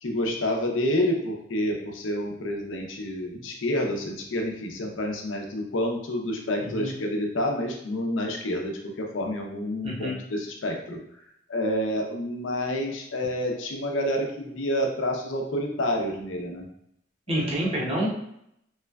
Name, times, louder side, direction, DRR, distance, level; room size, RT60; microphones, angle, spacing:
voice 1, 0.0-8.7 9.1-11.0 11.5-16.6 17.3-17.5, left 1 dB, 85° left, 2 dB, 0.6 m, -28 dB
voice 2, 6.6-6.9 9.8-10.2 17.3-18.1, equal, 30° right, -4 dB, 0.8 m, -27 dB
3.3 x 3.0 x 2.3 m, 0.75 s
head